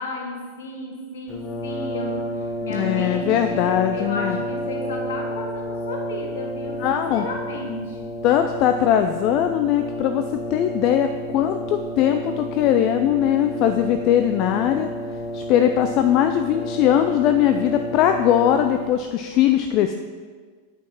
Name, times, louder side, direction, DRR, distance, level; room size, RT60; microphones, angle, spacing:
voice 1, 0.0-3.6 3.9-8.0, left 2 dB, 60° left, 2 dB, 1.6 m, -33 dB
Brass instrument, 1.3-19.1, equal, 25° left, 0.9 m, -31 dB
voice 2, 2.7-4.4 6.8-7.2 8.2-14.9 15.3-19.9, left 10 dB, 40° left, 7 dB, 0.4 m, -20 dB
8.7 x 5.9 x 5.6 m, 1.5 s
figure-of-eight pair, 90°, 0 cm